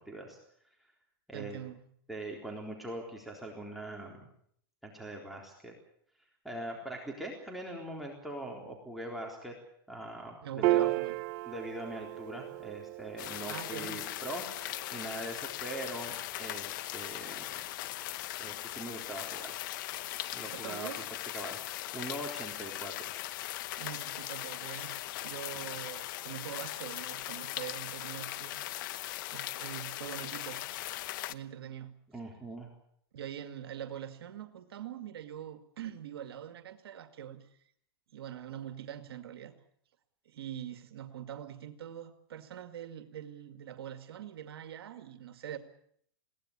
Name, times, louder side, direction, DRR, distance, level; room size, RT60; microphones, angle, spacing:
voice 1, 0.1-0.4 1.3-1.6 2.1-4.3 4.8-5.7 6.4-9.6 9.9-10.9 11.4-17.6 18.4-19.6 20.3-20.9 21.3-21.6 21.9-23.2 32.1-32.7, right 1 dB, ahead, -2 dB, 4.0 m, -42 dB
voice 2, 1.3-1.8 10.4-11.2 13.5-14.0 20.5-21.1 23.8-24.9 25.2-28.6 29.3-30.6 31.3-31.9 33.1-37.5 38.1-39.5 40.3-45.6, right 10 dB, 80° right, 8 dB, 2.2 m, -43 dB
Piano, 10.6-17.3, right 17 dB, 45° right, 0.9 m, -35 dB
sound 1, 13.2-31.3, left 16 dB, 55° left, 1.0 m, -39 dB
22.0 x 17.5 x 8.8 m, 0.67 s
hypercardioid pair, 135°, 13 cm